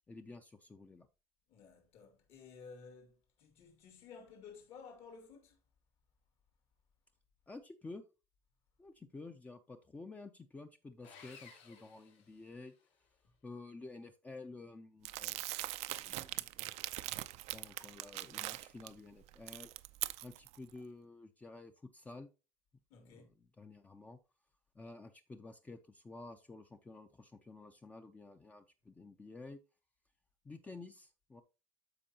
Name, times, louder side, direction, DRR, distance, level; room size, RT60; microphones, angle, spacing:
voice 1, 0.1-1.1 7.5-8.0 8.8-12.7 13.4-16.5 17.5-19.7 20.2-22.3 23.0-24.2 24.7-29.6 30.4-31.4, left 3 dB, 15° left, 0.5 m, -51 dB
voice 2, 1.5-5.6 22.9-23.3, left 5 dB, 60° left, 2.3 m, -55 dB
Sawing, 11.0-12.9, left 6 dB, 85° left, 3.2 m, -58 dB
Crumpling crinkling, 15.0-18.9 19.3-20.6, right 18 dB, 75° right, 0.5 m, -41 dB
13.0 x 4.5 x 2.9 m
cardioid pair, 165°, 11 cm